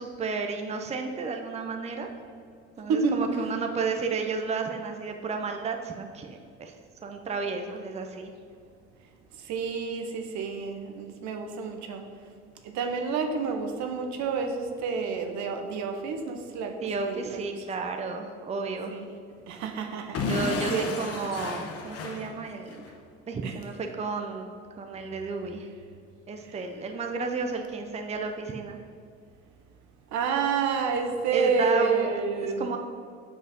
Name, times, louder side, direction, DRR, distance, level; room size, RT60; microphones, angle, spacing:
voice 1, 0.0-2.1 2.8-6.7 7.0-8.3 16.8-19.0 20.3-22.8 23.3-24.5 24.8-25.7 26.3-28.8 31.3-32.1 32.4-32.8, right 4 dB, 20° right, 4 dB, 0.6 m, -32 dB
voice 2, 2.9-3.3 9.4-12.0 12.6-17.6 18.9-19.2 19.5-20.9 23.4-23.6 30.1-32.8, right 5 dB, 60° right, 5 dB, 1.0 m, -29 dB
Explosion / Shatter, 20.1-22.9, left 3 dB, 50° left, 1.1 m, -32 dB
5.8 x 5.2 x 5.2 m, 2.2 s
supercardioid pair, 95°, 31 cm